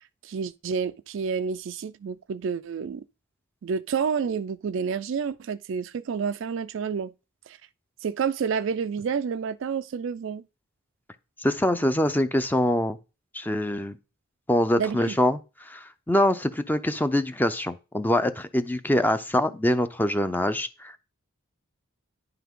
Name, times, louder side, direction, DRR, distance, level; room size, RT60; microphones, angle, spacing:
voice 1, 0.2-3.0 3.6-7.1 7.5-7.6 8.0-10.5 14.8-15.2, right 6 dB, 60° right, 0.4 m, -29 dB
voice 2, 11.4-13.0 13.3-14.0 14.5-21.0, left 1 dB, 10° left, 0.5 m, -24 dB
10.0 x 5.8 x 3.6 m
head